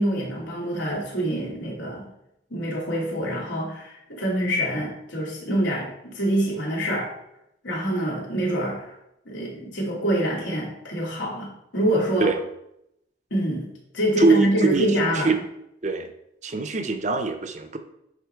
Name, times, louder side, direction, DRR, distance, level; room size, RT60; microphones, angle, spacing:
voice 1, 0.0-2.1 2.5-7.1 7.6-8.9 9.2-12.3 13.3-15.4, right 1 dB, 80° left, -4 dB, 2.9 m, -26 dB
voice 2, 14.2-14.9 15.1-15.4 15.8-16.1 16.4-17.8, right 3 dB, 40° right, 8 dB, 0.7 m, -23 dB
10.5 x 4.0 x 4.6 m, 0.80 s
head